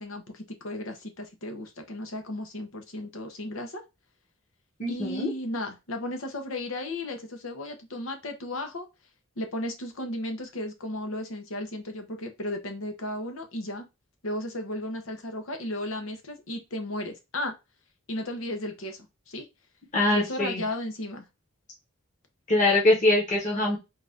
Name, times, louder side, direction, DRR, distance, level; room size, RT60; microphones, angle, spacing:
voice 1, 0.0-3.8 4.9-8.8 9.4-13.8 14.2-17.5 18.1-19.0 19.3-19.5 20.1-21.3, left 1 dB, 85° left, 5 dB, 1.0 m, -34 dB
voice 2, 4.8-5.3 19.9-20.6 22.5-23.8, left 2 dB, 35° left, -4 dB, 1.3 m, -23 dB
4.0 x 2.6 x 3.5 m, 0.25 s
head